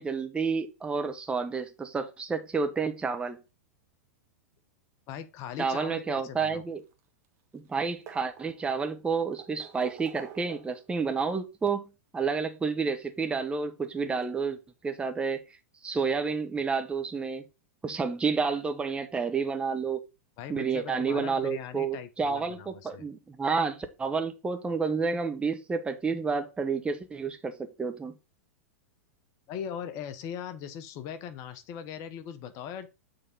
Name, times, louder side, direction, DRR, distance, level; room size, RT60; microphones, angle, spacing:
voice 1, 0.0-3.4 5.6-6.8 7.5-14.6 14.8-15.4 15.8-17.4 17.8-20.0 20.5-28.1, right 5 dB, 15° right, 1.0 m, -30 dB
voice 2, 5.1-6.6 20.4-23.0 29.5-32.9, left 8 dB, 45° left, 0.9 m, -40 dB
sound 1, 6.7-7.4 7.7-8.8 9.3-11.0 12.2-12.3 13.8-13.9 14.2-14.3, right 7 dB, 40° right, 1.1 m, -48 dB
6.7 x 3.6 x 5.3 m
figure-of-eight pair, 100°, 8 cm